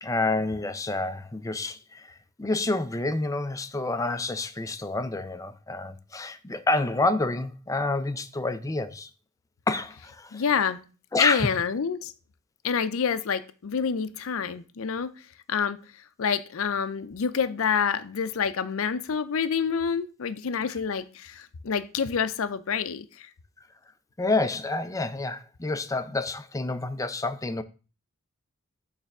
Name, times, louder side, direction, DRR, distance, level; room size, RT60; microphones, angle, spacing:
voice 1, 0.0-9.1 9.7-10.4 11.1-11.6 24.2-27.6, left 2 dB, 15° left, 0.4 m, -28 dB
voice 2, 10.3-10.8 11.2-12.1 12.6-15.1 15.5-15.8 16.2-23.3, left 6 dB, 65° left, 0.5 m, -27 dB
6.6 x 3.3 x 5.9 m
head